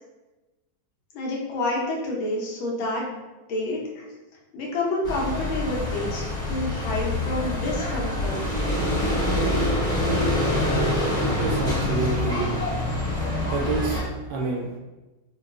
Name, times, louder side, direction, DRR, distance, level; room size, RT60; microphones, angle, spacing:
voice 1, 1.1-3.2 3.5-4.1 4.5-8.4, left 2 dB, 90° left, -2 dB, 1.6 m, -29 dB
sound 1, 5.0-14.0, left 1 dB, 5° left, 0.9 m, -25 dB
voice 2, 11.4-12.5 13.0-13.1 13.5-14.0 14.3-14.8, right 4 dB, 75° right, -1 dB, 1.1 m, -28 dB
4.5 x 2.3 x 2.4 m, 1.1 s
omnidirectional pair, 2.1 m